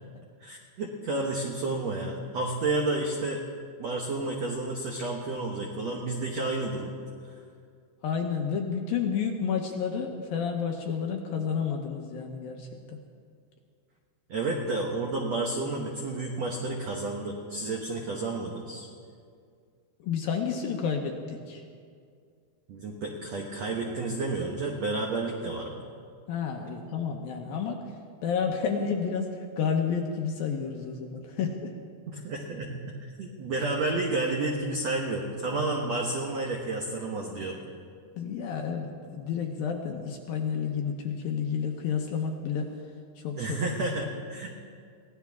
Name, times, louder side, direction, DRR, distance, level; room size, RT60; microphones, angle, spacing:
voice 1, 0.4-3.4 3.8-6.9 14.3-18.9 22.7-25.8 32.1-37.6 43.4-44.5, right 2 dB, 85° right, -1 dB, 1.5 m, -31 dB
voice 2, 8.0-13.0 20.0-21.6 26.3-27.8 28.2-29.3 29.6-31.7 38.2-42.7 43.2-43.7, left 6 dB, 75° left, 2 dB, 2.3 m, -30 dB
23.0 x 17.0 x 3.6 m, 2.2 s
omnidirectional pair, 5.0 m